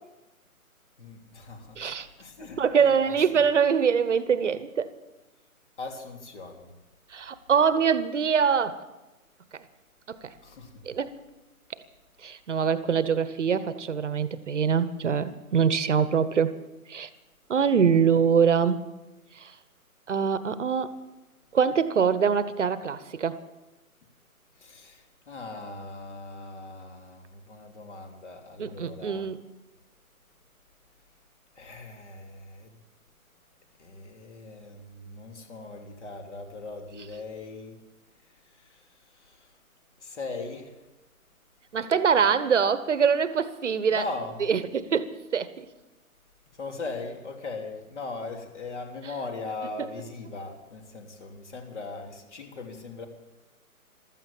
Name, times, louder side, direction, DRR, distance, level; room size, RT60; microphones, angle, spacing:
voice 1, 1.0-1.9 2.2-3.4 5.8-6.7 10.4-10.8 24.6-29.3 31.6-32.8 33.8-37.9 38.3-39.6 40.0-40.8 43.9-44.5 46.5-53.1, left 3 dB, 50° left, 3.1 m, -39 dB
voice 2, 1.8-2.1 2.6-4.9 7.1-8.8 10.1-10.3 10.9-11.1 12.2-16.6 16.9-17.1 17.5-18.8 19.4-19.5 20.1-20.9 21.5-23.4 28.6-29.4 41.7-44.0 44.5-45.7, right 6 dB, 55° right, 1.1 m, -24 dB
14.5 x 13.5 x 7.2 m
figure-of-eight pair, 145°, 44 cm